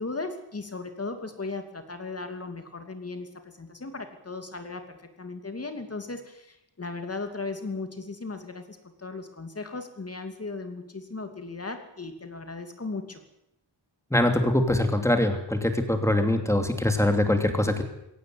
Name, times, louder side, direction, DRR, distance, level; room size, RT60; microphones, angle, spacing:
voice 1, 0.0-13.2, left 3 dB, 30° left, 6 dB, 2.8 m, -37 dB
voice 2, 14.1-17.8, left 1 dB, 5° left, 5 dB, 2.9 m, -23 dB
23.0 x 17.0 x 9.5 m, 0.81 s
wide cardioid pair, 175°, 45 cm